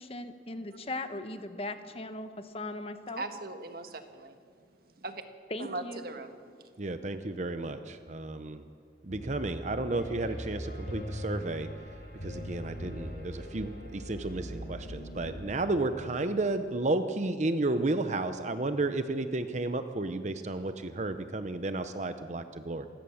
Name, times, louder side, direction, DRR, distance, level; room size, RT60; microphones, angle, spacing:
voice 1, 0.0-3.2 5.5-6.1, left 2 dB, 35° left, 9 dB, 1.1 m, -38 dB
voice 2, 3.2-4.4 4.9-5.2 5.6-6.3, right 2 dB, 55° right, 7 dB, 1.5 m, -39 dB
voice 3, 6.8-8.6 9.0-11.7 12.2-22.9, right 2 dB, 40° right, 9 dB, 0.8 m, -32 dB
Piano, 9.1-16.1, equal, 55° left, 6.6 m, -41 dB
28.0 x 16.5 x 7.2 m, 2.2 s
head